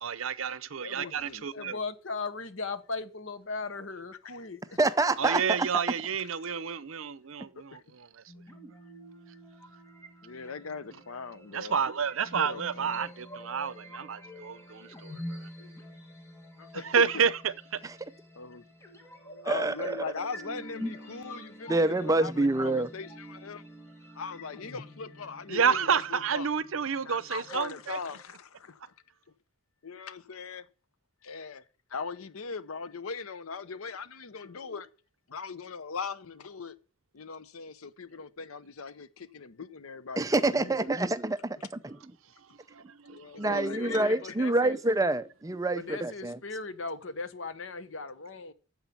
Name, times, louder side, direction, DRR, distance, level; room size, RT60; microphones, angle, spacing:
voice 1, 0.0-1.7 5.2-7.8 11.5-15.1 16.9-17.8 25.5-28.0 43.1-43.2 43.5-44.0, right 6 dB, 70° right, 0.7 m, -29 dB
voice 2, 0.9-1.8 7.7-7.8 10.2-11.8 12.4-13.1 16.6-17.2 18.4-18.6 19.4-23.6 24.1-26.5 27.0-28.9 29.8-30.7 31.2-31.6 31.9-34.9 35.3-36.8 37.1-40.9 43.1-44.2, left 5 dB, 85° left, 0.8 m, -40 dB
voice 3, 1.5-5.1 43.5-44.8 45.7-48.5, left 3 dB, 65° left, 1.0 m, -38 dB
voice 4, 4.8-5.7 17.8-17.9 19.4-20.0 21.7-22.9 40.2-41.6 43.4-46.4, right 2 dB, 15° right, 0.5 m, -26 dB
sound 1, 8.3-28.2, equal, 15° left, 1.6 m, -46 dB
9.2 x 7.3 x 5.8 m
head